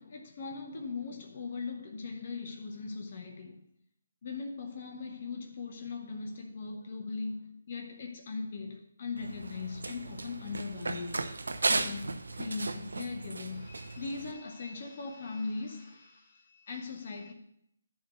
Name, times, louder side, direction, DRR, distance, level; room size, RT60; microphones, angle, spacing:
voice 1, 0.0-3.6 4.2-11.3 11.7-17.3, left 4 dB, 45° left, 1.2 m, -39 dB
Run, 9.2-14.3, right 3 dB, 80° right, 0.9 m, -35 dB
11.0 x 3.9 x 6.4 m
figure-of-eight pair, 155°, 0 cm